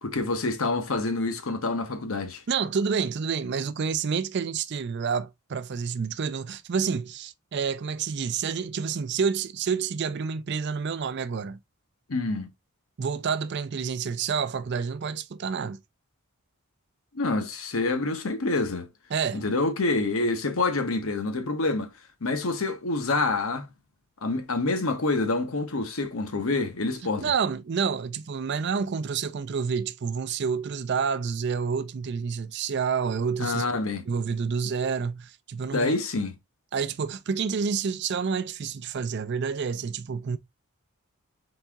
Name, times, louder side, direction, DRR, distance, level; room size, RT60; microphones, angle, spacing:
voice 1, 0.0-2.4 12.1-12.5 17.1-18.9 19.3-21.9 22.2-23.7 24.2-27.3 33.4-34.0 35.7-36.4, left 3 dB, 70° left, 0.9 m, -27 dB
voice 2, 2.5-11.6 13.0-15.8 19.1-19.5 27.2-33.7 34.1-35.9 36.7-40.4, right 6 dB, 50° right, 0.4 m, -28 dB
4.1 x 3.5 x 3.4 m
head